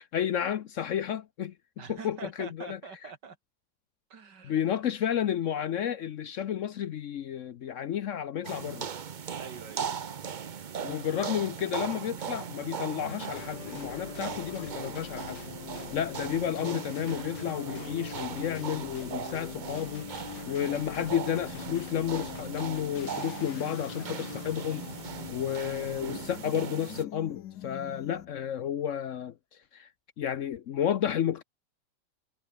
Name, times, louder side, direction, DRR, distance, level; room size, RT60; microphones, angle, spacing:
voice 1, 0.0-1.5 1.9-2.8 4.4-8.9 10.8-15.4 15.9-20.1 20.5-24.9 25.3-29.3 29.7-29.9 30.2-31.4, left 9 dB, 60° left, 0.9 m, -31 dB
voice 2, 1.8-3.4 4.1-4.8 9.4-10.0, right 5 dB, 90° right, 2.9 m, -45 dB
sound 1, 8.4-27.0, right 7 dB, 45° right, 0.6 m, -39 dB
sound 2, 13.4-28.5, left 12 dB, 80° left, 1.4 m, -43 dB
omnidirectional pair, 1.8 m